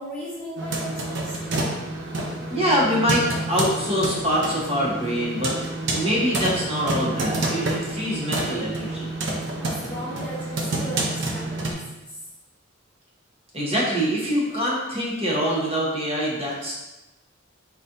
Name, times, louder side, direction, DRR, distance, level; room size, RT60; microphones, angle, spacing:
voice 1, 0.0-1.3 9.6-12.2, equal, 5° left, -8 dB, 0.8 m, -36 dB
sound 1, 0.6-11.7, right 2 dB, 60° right, 0.6 m, -28 dB
voice 2, 2.5-5.5 5.8-9.1 13.5-16.8, equal, 30° right, -5 dB, 1.1 m, -24 dB
4.2 x 4.1 x 2.6 m, 1.0 s
head